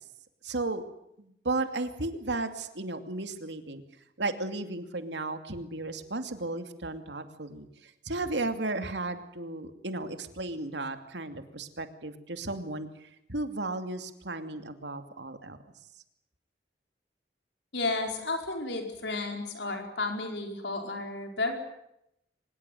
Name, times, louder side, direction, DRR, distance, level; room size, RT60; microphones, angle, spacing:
voice 1, 0.4-0.8 1.2-3.8 4.2-15.6, right 2 dB, 80° right, 8 dB, 2.7 m, -34 dB
voice 2, 17.7-21.6, left 3 dB, 80° left, 4 dB, 4.7 m, -32 dB
24.5 x 21.0 x 9.3 m, 0.79 s
head